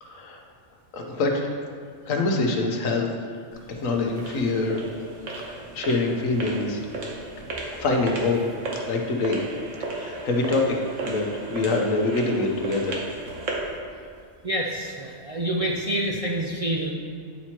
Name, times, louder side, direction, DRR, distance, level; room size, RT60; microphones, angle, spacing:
voice 1, 0.0-0.4 0.9-1.6 2.1-3.1 3.7-4.8 5.3-6.9 7.7-8.4 8.9-9.4 9.9-10.8 11.0-13.0, left 3 dB, 90° left, 2 dB, 1.3 m, -25 dB
sound 1, 3.5-13.8, right 2 dB, 70° right, 1.4 m, -35 dB
voice 2, 14.4-16.9, right 1 dB, 50° right, -2 dB, 0.4 m, -27 dB
9.8 x 4.4 x 4.4 m, 2.3 s
omnidirectional pair, 1.3 m